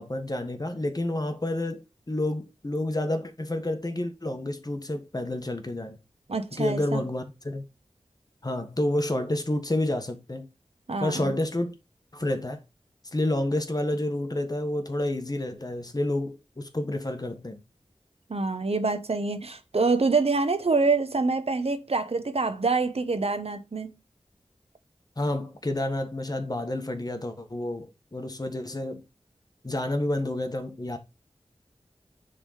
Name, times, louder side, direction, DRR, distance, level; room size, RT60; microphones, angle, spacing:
voice 1, 0.0-6.0 6.5-7.6 8.4-10.5 11.0-11.8 12.1-12.6 13.1-17.6 25.2-29.0 29.6-31.0, left 1 dB, 35° left, 1.4 m, -29 dB
voice 2, 6.3-7.0 10.9-11.3 18.3-23.9, right 3 dB, 70° right, 1.1 m, -26 dB
6.6 x 3.9 x 4.9 m
wide cardioid pair, 45°, 11 cm